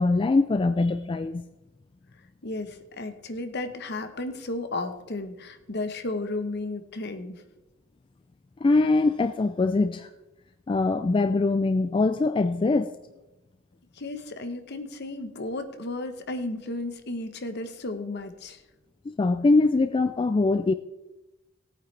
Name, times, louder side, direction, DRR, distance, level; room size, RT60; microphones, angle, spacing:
voice 1, 0.0-1.5 8.6-10.1 10.7-12.9 19.1-20.7, left 3 dB, 25° left, 10 dB, 0.3 m, -23 dB
voice 2, 2.4-7.4 13.9-18.6, left 2 dB, 55° left, 9 dB, 1.0 m, -34 dB
17.5 x 8.8 x 3.3 m, 1.0 s
head